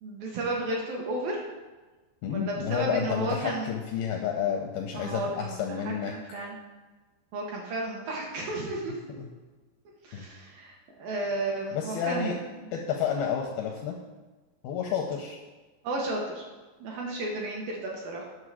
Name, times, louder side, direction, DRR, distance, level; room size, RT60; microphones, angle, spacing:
voice 1, 0.0-1.4 2.3-3.7 4.9-6.6 7.3-9.0 10.0-10.7 11.0-12.3 15.8-16.4 16.8-18.3, right 2 dB, 70° right, -2 dB, 2.4 m, -33 dB
voice 2, 2.2-6.1 9.1-9.3 10.1-10.3 11.7-12.4 12.7-14.0 14.6-15.4, left 8 dB, 80° left, 2 dB, 2.2 m, -30 dB
9.8 x 6.3 x 4.8 m, 1.2 s
omnidirectional pair, 5.0 m